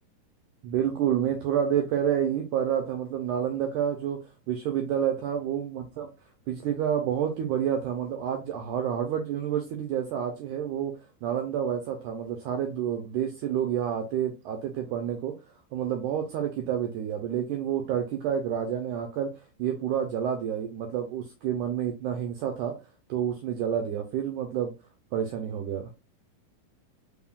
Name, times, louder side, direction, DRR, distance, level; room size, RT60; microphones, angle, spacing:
voice 1, 0.6-6.1 6.5-15.3 15.7-19.3 19.6-22.7 23.1-24.7 25.1-25.9, right 9 dB, 80° right, 4 dB, 1.8 m, -29 dB
5.1 x 3.5 x 2.3 m, 0.27 s
omnidirectional pair, 4.1 m